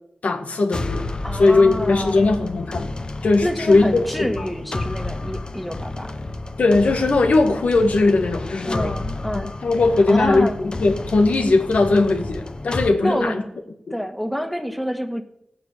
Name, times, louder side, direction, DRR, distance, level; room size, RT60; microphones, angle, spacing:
voice 1, 0.2-2.9 3.2-4.5 6.6-9.0 9.3-13.4 13.9-14.0, left 3 dB, 80° left, 5 dB, 2.1 m, -19 dB
sound 1, 0.7-12.9, left 2 dB, 40° left, 1.2 m, -31 dB
voice 2, 1.2-2.3 3.4-6.1 8.6-9.5 10.1-10.6 13.0-13.6 13.9-15.2, equal, ahead, 6 dB, 1.8 m, -27 dB
17.0 x 8.5 x 8.2 m, 0.77 s
wide cardioid pair, 70°, 2 cm